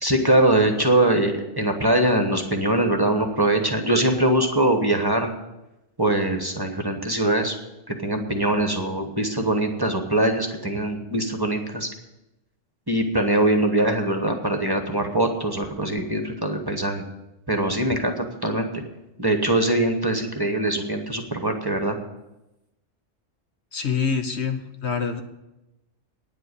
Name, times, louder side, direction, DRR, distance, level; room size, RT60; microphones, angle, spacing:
voice 1, 0.0-5.3 6.0-7.5 7.9-11.9 12.9-17.0 17.5-18.8 19.2-22.0, right 1 dB, 20° right, 4 dB, 1.1 m, -22 dB
voice 2, 23.7-25.2, left 6 dB, 60° left, 7 dB, 1.1 m, -26 dB
9.7 x 7.9 x 9.6 m, 0.96 s
omnidirectional pair, 1.3 m